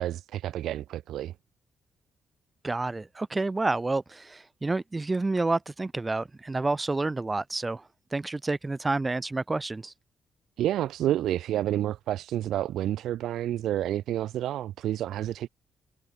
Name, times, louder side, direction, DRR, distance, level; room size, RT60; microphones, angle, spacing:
voice 1, 0.0-1.3 10.6-15.5, right 12 dB, 80° right, 1.2 m, -29 dB
voice 2, 2.6-7.8 8.1-9.9, right 3 dB, 25° right, 1.8 m, -29 dB
supercardioid pair, 65°, 0 cm